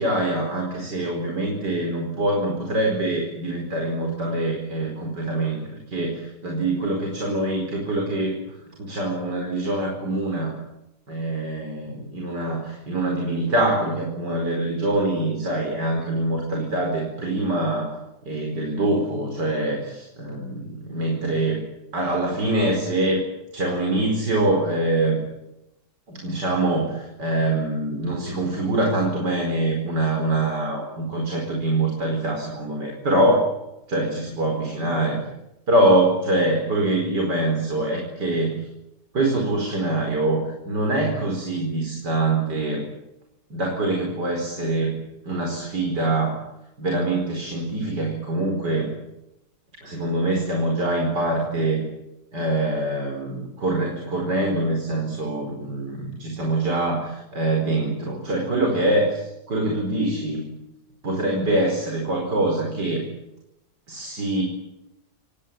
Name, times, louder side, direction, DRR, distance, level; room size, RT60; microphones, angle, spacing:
voice 1, 0.0-5.6 5.9-8.4 8.8-10.6 11.1-18.0 18.2-21.6 21.9-23.2 23.5-25.2 26.1-33.5 33.9-35.2 35.7-38.6 39.1-42.9 43.5-45.0 45.3-46.4 46.8-48.9 49.8-51.8 52.3-60.5 61.0-63.1 63.9-64.4, right 2 dB, 75° right, 1 dB, 5.3 m, -24 dB
28.5 x 19.5 x 9.1 m, 0.89 s
omnidirectional pair, 1.9 m